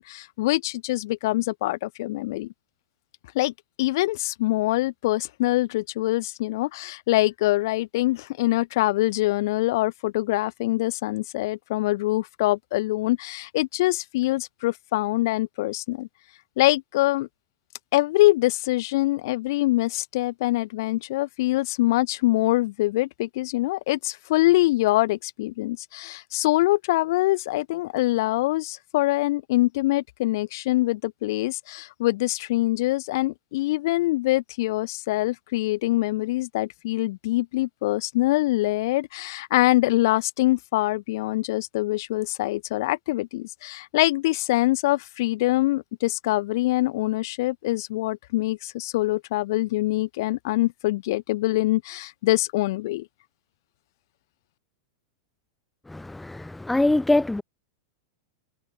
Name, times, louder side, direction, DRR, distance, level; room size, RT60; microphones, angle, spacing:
voice 1, 0.0-2.5 3.3-3.5 3.8-16.1 16.6-17.3 17.9-53.1, left 18 dB, 65° left, 2.2 m, -24 dB
voice 2, 55.9-57.4, left 2 dB, 5° left, 0.8 m, -23 dB
supercardioid pair, 135°, 2 cm